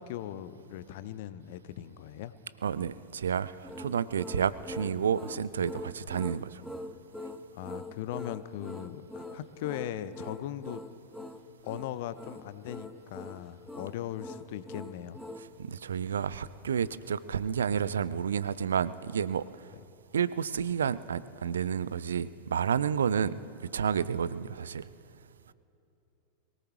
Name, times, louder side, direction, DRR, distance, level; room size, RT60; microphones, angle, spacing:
voice 1, 0.0-2.3 7.5-10.8 11.6-15.2, left 12 dB, 50° left, 15 dB, 0.6 m, -39 dB
voice 2, 2.6-6.6 15.6-19.5 20.1-24.9, right 7 dB, 65° right, 18 dB, 0.4 m, -30 dB
sound 1, 3.6-15.5, left 1 dB, ahead, 0.6 m, -43 dB
23.0 x 17.5 x 3.1 m, 2.8 s
figure-of-eight pair, 90°, 0 cm